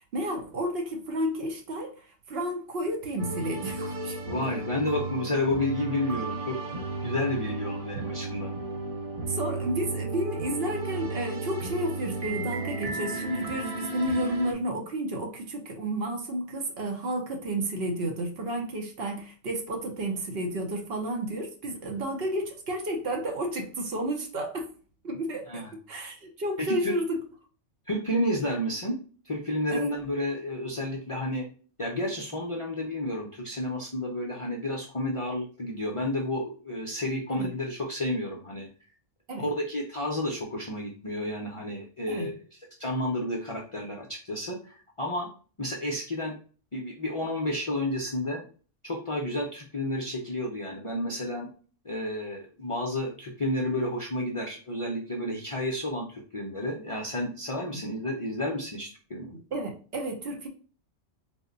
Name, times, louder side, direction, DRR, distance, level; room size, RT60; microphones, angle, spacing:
voice 1, 0.0-4.2 9.3-24.7 25.0-27.2 29.7-29.9 37.3-37.5 39.3-39.5 42.1-42.3 57.7-57.8 59.5-60.5, right 1 dB, 60° right, 0.9 m, -31 dB
sound 1, 3.2-14.5, right 3 dB, 40° right, 0.6 m, -34 dB
voice 2, 4.2-8.5 25.5-25.7 26.6-26.9 27.9-28.9 29.2-31.5 31.8-38.7 39.4-42.3 42.8-45.3 45.6-46.4 46.7-48.4 48.8-51.5 51.8-59.3, left 1 dB, 45° left, 0.4 m, -31 dB
3.5 x 2.1 x 3.8 m
omnidirectional pair, 1.2 m